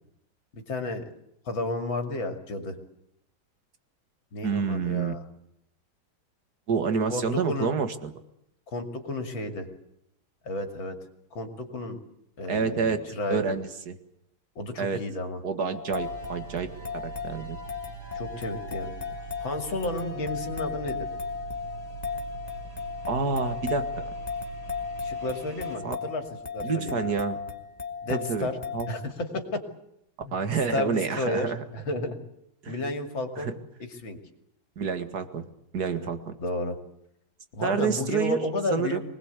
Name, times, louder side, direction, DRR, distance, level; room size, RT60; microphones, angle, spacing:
voice 1, 0.5-1.0 1.5-2.8 4.3-5.2 7.1-7.7 8.7-9.7 10.4-11.0 11.3-12.0 12.4-13.5 14.6-15.4 18.1-18.9 19.4-21.0 25.0-26.2 26.5-27.0 28.0-28.6 28.9-29.6 30.2-30.3 30.7-32.2 32.7-33.5 33.8-34.2 36.0-36.1 36.4-36.8 37.6-39.0, left 2 dB, 70° left, 6 dB, 3.3 m, -32 dB
voice 2, 4.4-5.1 6.7-8.1 12.5-13.0 13.3-13.9 14.8-15.0 15.4-16.8 17.0-17.6 23.1-24.1 25.8-26.0 26.6-27.4 28.1-28.9 30.3-31.6 32.6-32.7 33.4-33.5 34.8-35.5 35.7-36.4 37.6-38.4 38.7-39.0, right 6 dB, 50° right, 9 dB, 2.3 m, -28 dB
sound 1, 15.7-29.1, left 6 dB, 20° left, 2.0 m, -36 dB
sound 2, 16.0-25.8, right 6 dB, 65° right, 6.4 m, -43 dB
24.5 x 19.5 x 8.3 m, 0.78 s
omnidirectional pair, 2.2 m